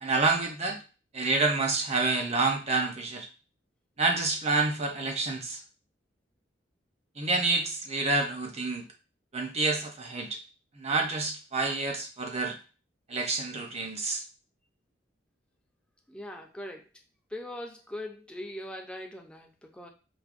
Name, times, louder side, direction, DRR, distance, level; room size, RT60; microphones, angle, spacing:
voice 1, 0.0-0.8 1.1-3.3 4.0-5.6 7.2-8.8 9.3-10.4 10.7-12.6 13.1-14.2, right 3 dB, 35° right, 3 dB, 0.6 m, -28 dB
voice 2, 16.1-16.9 17.3-19.9, left 1 dB, 5° left, 2 dB, 0.5 m, -41 dB
4.7 x 2.2 x 2.5 m, 0.33 s
head